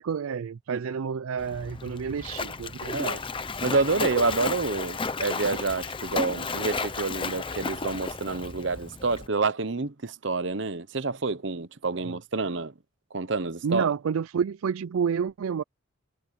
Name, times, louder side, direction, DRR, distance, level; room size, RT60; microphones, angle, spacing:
voice 1, 0.0-3.0 12.1-12.2 13.6-15.6, right 7 dB, 90° right, 0.4 m, -29 dB
Splash splatter, 1.4-9.3, left 4 dB, 25° left, 0.8 m, -33 dB
voice 2, 2.9-3.2 3.6-12.7 13.1-13.9, right 3 dB, 60° right, 0.9 m, -28 dB
head